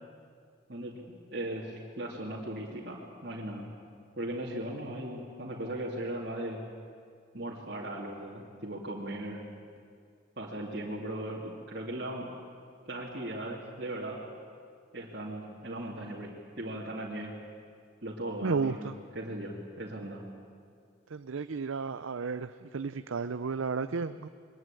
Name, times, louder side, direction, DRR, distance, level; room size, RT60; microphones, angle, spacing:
voice 1, 1.3-3.6 4.2-6.6 7.3-9.4 10.4-12.3 12.9-14.2 14.9-17.3 18.0-20.2, right 1 dB, 50° right, -5 dB, 2.7 m, -38 dB
voice 2, 18.4-18.9 21.1-22.5 22.7-24.3, right 5 dB, 85° right, 12 dB, 0.6 m, -32 dB
22.5 x 20.5 x 9.0 m, 2.2 s
head